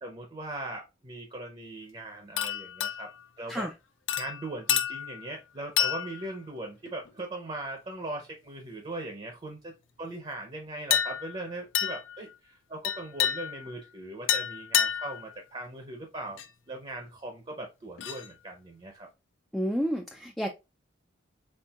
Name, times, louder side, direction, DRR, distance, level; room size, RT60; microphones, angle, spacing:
voice 1, 0.0-3.1 3.4-3.7 4.2-9.7 10.0-16.4 16.7-19.1, right 2 dB, 30° right, 0.7 m, -39 dB
sound 1, 2.4-3.3 4.1-5.3 5.8-6.3 6.9-7.1 10.9-11.4 11.7-12.2 12.8-13.7 14.3-15.2 16.4-16.5 18.0-18.3, left 10 dB, 75° left, 0.5 m, -29 dB
voice 2, 19.5-20.5, equal, ahead, 0.3 m, -30 dB
4.4 x 3.6 x 2.3 m
head